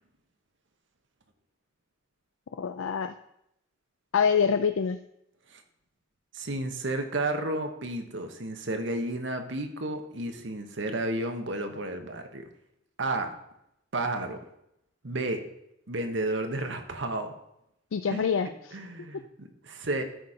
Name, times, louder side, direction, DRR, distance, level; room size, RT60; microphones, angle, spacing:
voice 1, 2.6-3.1 4.1-5.0 17.9-18.8, left 6 dB, 85° left, 9 dB, 0.4 m, -26 dB
voice 2, 6.3-12.5 13.0-13.3 13.9-14.5 15.0-15.4 15.9-17.3 18.1-18.3 18.7-20.0, right 2 dB, 65° right, 6 dB, 1.1 m, -32 dB
12.5 x 4.4 x 5.0 m, 0.80 s
head